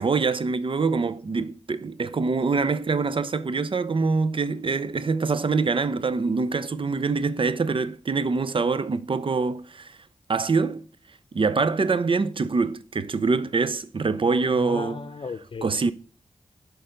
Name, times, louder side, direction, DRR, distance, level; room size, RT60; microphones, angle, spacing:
voice 1, 0.0-10.0 10.3-10.9 11.3-15.1 15.6-15.9, right 4 dB, 50° right, 0.6 m, -24 dB
voice 2, 14.6-15.9, left 4 dB, 50° left, 0.7 m, -35 dB
6.8 x 3.9 x 6.4 m
cardioid pair, 50°, 11 cm